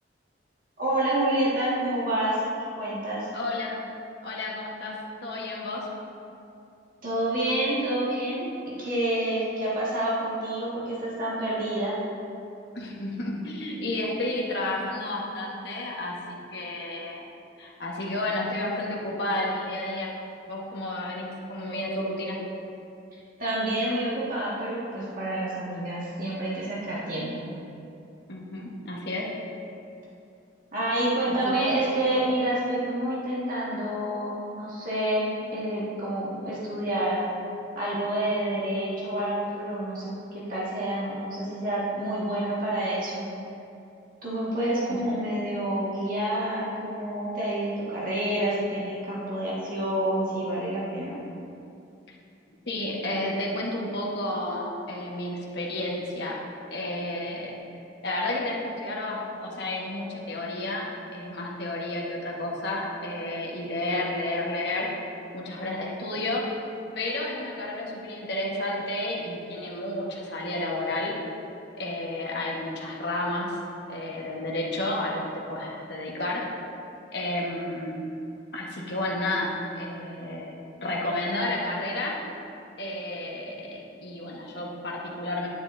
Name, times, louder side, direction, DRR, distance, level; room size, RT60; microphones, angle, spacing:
voice 1, 0.8-2.4 2.8-3.3 7.0-12.0 23.4-27.3 30.7-37.2 37.8-43.3 44.2-51.2, right 1 dB, 45° right, -8 dB, 1.8 m, -28 dB
voice 2, 3.3-3.8 4.2-5.9 12.7-17.2 17.6-20.1 20.5-22.4 28.3-29.3 31.3-31.5 44.9-45.0 52.7-56.4 56.7-57.5 58.0-64.9 65.3-66.4 66.9-71.2 71.8-73.6 73.9-75.2 75.5-76.4 77.1-78.0 78.5-82.2 82.8-85.5, left 1 dB, 60° left, -3 dB, 1.3 m, -31 dB
9.9 x 9.6 x 2.7 m, 2.6 s
head